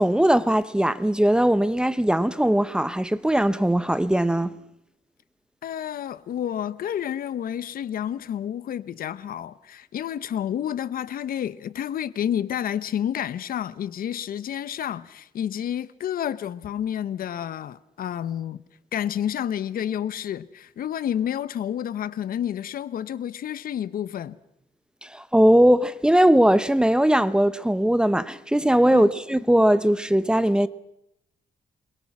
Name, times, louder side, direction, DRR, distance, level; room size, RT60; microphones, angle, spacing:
voice 1, 0.0-4.5 25.0-30.7, right 1 dB, 5° right, 0.9 m, -20 dB
voice 2, 5.6-18.6 18.9-24.4 28.9-29.1, left 10 dB, 75° left, 1.0 m, -30 dB
28.0 x 22.5 x 6.1 m
cardioid pair, 125°, 15 cm